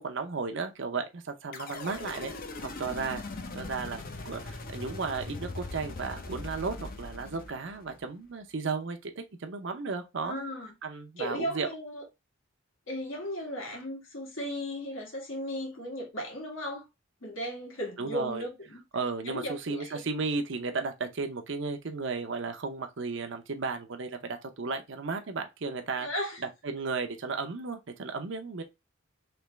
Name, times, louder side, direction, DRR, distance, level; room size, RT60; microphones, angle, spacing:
voice 1, 0.0-2.3 2.6-3.2 3.5-10.4 10.8-11.7 18.0-18.5 18.9-26.1 26.4-28.6, right 4 dB, 60° right, 0.6 m, -34 dB
sound 1, 1.5-8.0, left 3 dB, 45° left, 0.6 m, -40 dB
voice 2, 10.2-10.7 11.2-12.0 12.9-16.8 17.2-18.8 19.2-20.0 26.0-26.4, equal, 70° left, 1.5 m, -36 dB
3.4 x 3.0 x 3.0 m
head